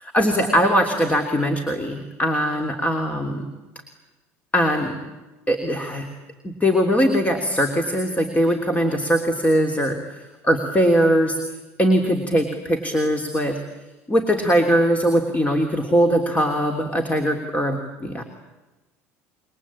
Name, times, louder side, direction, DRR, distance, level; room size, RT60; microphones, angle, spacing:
voice 1, 0.0-3.5 4.5-5.0 5.5-6.1 6.4-11.4 11.8-13.6 14.1-18.2, equal, 20° left, 5 dB, 3.3 m, -21 dB
28.0 x 23.0 x 8.8 m, 1.1 s
hypercardioid pair, 70°, 8 cm